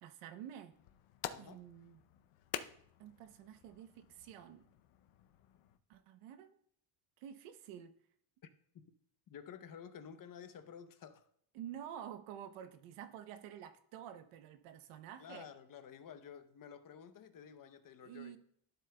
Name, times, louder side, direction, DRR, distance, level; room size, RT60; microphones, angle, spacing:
voice 1, 0.0-0.7 1.4-2.1 3.0-4.7 5.9-6.6 7.2-7.9 11.5-15.5 18.0-18.4, right 10 dB, 90° right, 1.0 m, -50 dB
sound 1, 0.7-5.8, left 11 dB, 85° left, 0.7 m, -49 dB
voice 2, 1.3-1.6 8.7-8.9 9.3-11.2 15.2-18.3, left 8 dB, 40° left, 0.8 m, -52 dB
12.5 x 7.6 x 2.2 m
cardioid pair, 120°, 50 cm